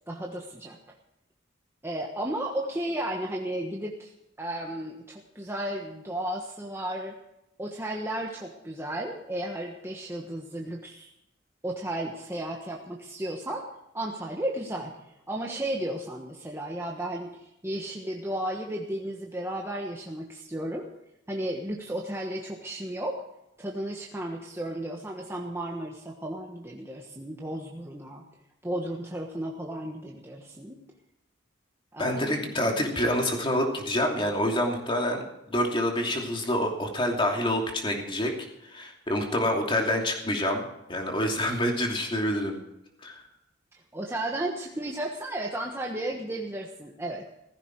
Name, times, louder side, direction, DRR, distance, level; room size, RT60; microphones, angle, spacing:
voice 1, 0.1-0.8 1.8-4.1 4.4-7.2 7.6-11.1 11.6-13.7 13.9-20.9 21.3-23.2 23.6-28.2 28.6-30.9 31.9-32.9 43.9-47.3, right 1 dB, 15° right, -1 dB, 1.3 m, -34 dB
voice 2, 32.0-35.2 35.5-38.3 38.6-42.6 43.0-43.2, left 1 dB, 25° left, 1 dB, 2.8 m, -27 dB
16.0 x 15.0 x 4.7 m, 0.86 s
head